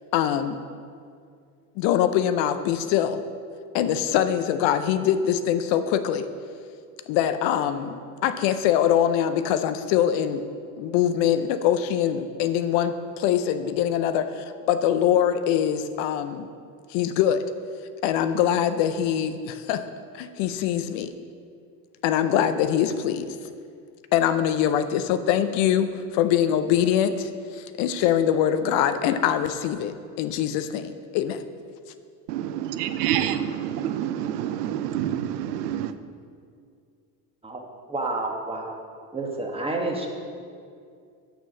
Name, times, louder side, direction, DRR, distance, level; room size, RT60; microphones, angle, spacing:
voice 1, 0.1-0.6 1.8-3.2 3.7-6.3 7.1-8.0 8.2-10.4 10.8-16.5 16.9-17.5 18.0-19.8 20.1-21.1 22.0-23.4 24.1-31.4, left 9 dB, 65° left, 10 dB, 0.7 m, -23 dB
voice 2, 32.3-35.9, right 10 dB, 85° right, 11 dB, 0.6 m, -27 dB
voice 3, 37.9-38.7 39.1-40.1, right 2 dB, 10° right, 1 dB, 1.3 m, -29 dB
6.7 x 6.2 x 6.2 m, 2.3 s
supercardioid pair, 90°, 46 cm